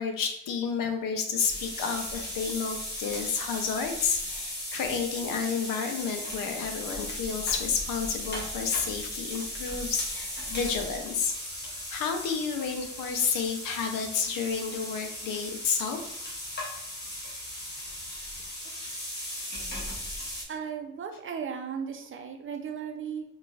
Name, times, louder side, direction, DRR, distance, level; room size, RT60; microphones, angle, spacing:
voice 1, 0.0-11.4 11.6-16.0, left 6 dB, 90° left, 5 dB, 0.6 m, -31 dB
sound 1, 1.4-20.4, left 1 dB, 30° left, 1.1 m, -37 dB
voice 2, 20.5-23.2, right 7 dB, 40° right, 4 dB, 0.5 m, -36 dB
3.8 x 2.4 x 2.3 m, 0.78 s
cardioid pair, 85°, 33 cm